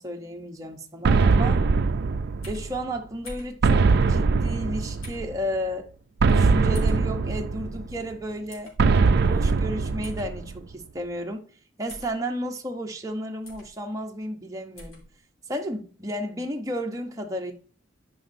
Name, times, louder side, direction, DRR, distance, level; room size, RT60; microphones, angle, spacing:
voice 1, 0.0-1.6 2.5-5.9 6.3-8.7 9.2-11.4 11.8-15.0 15.5-17.5, equal, 15° right, 0.8 m, -32 dB
sound 1, 1.0-2.8 3.6-5.3 6.2-8.0 8.8-10.6, right 4 dB, 50° right, 0.4 m, -21 dB
sound 2, 2.4-2.7 3.2-3.6 5.0-5.3 6.7-7.0 8.5-8.7 10.0-10.3 11.9-12.1 13.4-13.7 14.7-15.0, equal, 90° left, 3.1 m, -42 dB
11.0 x 5.4 x 2.6 m
head